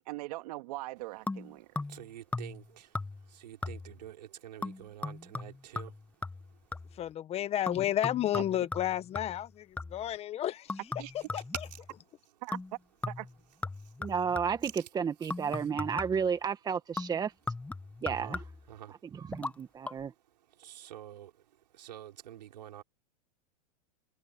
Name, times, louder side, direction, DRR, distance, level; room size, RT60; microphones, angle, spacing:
voice 1, 0.0-1.8 8.3-8.4 11.0-11.1 12.4-12.6 13.1-13.3, right 20 dB, 65° right, 2.9 m, -41 dB
sound 1, 1.3-2.1 2.3-2.7 2.9-3.3 3.6-4.1 4.6-7.0 7.7-10.1 10.7-12.0 12.5-12.8 13.0-14.7 15.3-16.3 17.0-18.7 19.3-19.5 19.8-19.9, left 3 dB, 5° left, 0.9 m, -39 dB
voice 2, 1.9-3.0 3.3-5.9 13.8-13.9 14.6-14.7 15.2-15.3 18.1-18.3 18.7-19.0 20.6-21.3 21.7-22.8, right 11 dB, 85° right, 5.1 m, -47 dB
voice 3, 6.9-10.8 11.1-11.4, left 12 dB, 30° left, 1.3 m, -32 dB
voice 4, 14.0-17.3 18.0-18.4 19.0-20.1, right 6 dB, 20° right, 1.6 m, -32 dB
supercardioid pair, 130°, 21 cm